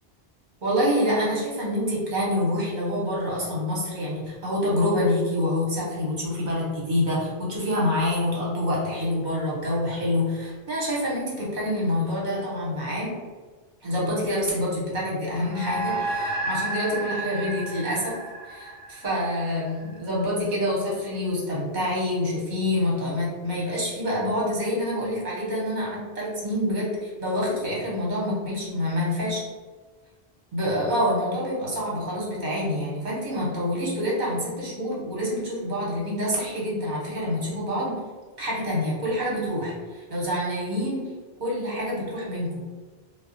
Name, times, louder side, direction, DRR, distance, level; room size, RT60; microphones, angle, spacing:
voice 1, 0.6-13.2 13.8-18.1 18.4-29.4 30.5-38.0 38.4-41.1 41.4-42.6, left 1 dB, 50° right, -5 dB, 1.0 m, -27 dB
sound 1, 15.5-20.2, right 2 dB, 75° right, 0.8 m, -32 dB
2.3 x 2.1 x 3.8 m, 1.4 s
omnidirectional pair, 1.0 m